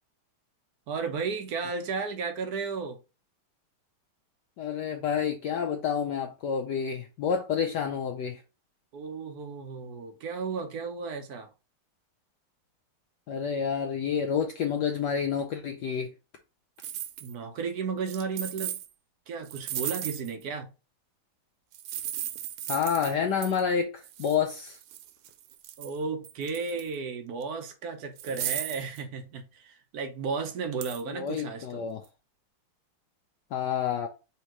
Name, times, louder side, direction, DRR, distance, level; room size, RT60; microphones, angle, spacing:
voice 1, 0.9-3.0 8.9-11.5 17.2-18.8 19.3-20.7 25.8-31.9, right 5 dB, 70° right, 0.9 m, -34 dB
voice 2, 4.6-8.4 13.3-16.1 22.7-24.8 31.1-32.0 33.5-34.1, left 7 dB, 90° left, 0.9 m, -29 dB
sound 1, 16.8-17.3 18.1-18.9 19.4-20.4 21.7-23.2 23.4-23.6 24.0-26.0 26.2-27.0 27.4-27.5 28.2-29.0 30.8-31.0, right 11 dB, 85° right, 1.5 m, -36 dB
3.5 x 2.9 x 4.6 m
omnidirectional pair, 2.4 m